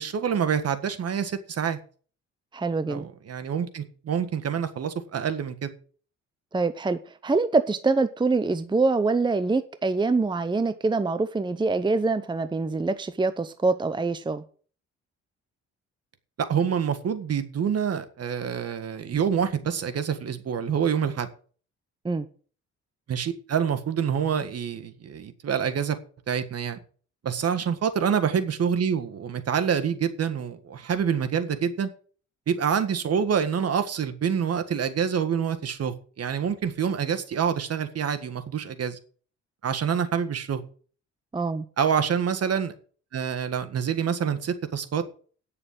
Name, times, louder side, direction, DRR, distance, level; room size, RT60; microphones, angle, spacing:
voice 1, 0.0-1.8 2.9-5.7 16.4-21.3 23.1-26.0 26.3-26.8 27.2-31.9 32.5-39.0 39.6-40.6 41.8-42.7 43.1-45.1, right 7 dB, 55° right, 9 dB, 1.7 m, -26 dB
voice 2, 2.5-3.1 6.5-14.4 22.0-22.3 41.3-41.6, right 3 dB, 15° right, 12 dB, 0.7 m, -25 dB
9.5 x 6.7 x 8.4 m, 0.42 s
cardioid pair, 90°, 30 cm